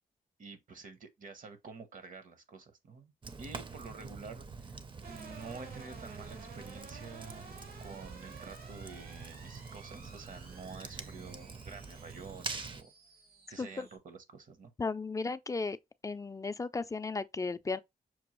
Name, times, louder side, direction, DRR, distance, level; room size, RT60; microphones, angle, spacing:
voice 1, 0.4-3.1 3.4-4.8 5.1-7.5 7.8-12.9 13.5-14.7, right 4 dB, 60° right, 0.8 m, -49 dB
Fire, 3.2-12.8, right 4 dB, 30° right, 0.5 m, -45 dB
sound 1, 5.0-14.0, right 4 dB, 80° right, 1.1 m, -53 dB
voice 2, 14.8-15.8 16.0-17.8, left 4 dB, 20° left, 0.3 m, -35 dB
6.0 x 2.3 x 3.0 m
cardioid pair, 85°, 16 cm